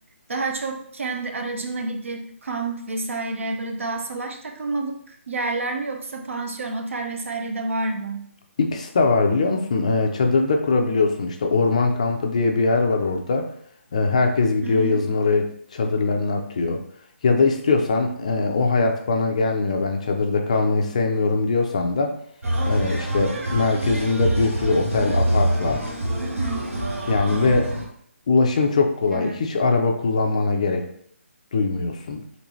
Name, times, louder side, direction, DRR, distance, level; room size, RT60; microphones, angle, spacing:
voice 1, 0.3-8.3 14.6-15.0 26.4-26.7 29.1-29.4, right 3 dB, 70° right, 4 dB, 0.7 m, -29 dB
voice 2, 8.6-13.5 13.9-16.8 17.2-22.1 22.7-25.8 27.1-27.7 28.3-30.9 31.5-32.2, left 3 dB, 30° left, 4 dB, 0.4 m, -21 dB
sound 1, 22.4-27.8, right 1 dB, 85° right, 1.2 m, -25 dB
3.9 x 3.2 x 3.1 m, 0.64 s
hypercardioid pair, 170°, 7 cm